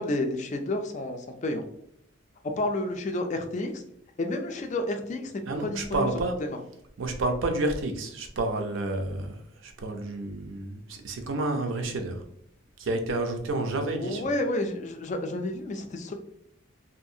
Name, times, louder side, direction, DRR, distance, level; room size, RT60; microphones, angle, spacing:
voice 1, 0.0-1.6 2.6-3.8 4.2-5.3 5.6-6.0 14.0-16.1, left 1 dB, 35° left, 0.3 m, -30 dB
voice 2, 5.5-6.4 7.0-12.2 12.8-14.3, right 2 dB, 65° right, 0.5 m, -30 dB
2.6 x 2.4 x 2.6 m
head